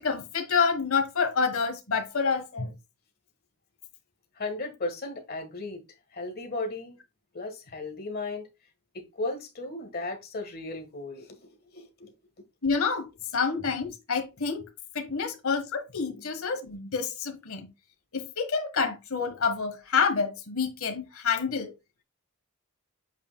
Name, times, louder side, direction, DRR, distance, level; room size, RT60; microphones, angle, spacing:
voice 1, 0.0-2.7 12.6-14.7 14.9-17.7 18.1-21.7, left 5 dB, 65° left, 1.3 m, -28 dB
voice 2, 4.4-5.8 6.1-7.0 7.3-8.5 8.9-12.1 16.1-16.2, left 2 dB, 45° left, 1.5 m, -35 dB
8.1 x 5.5 x 2.2 m
head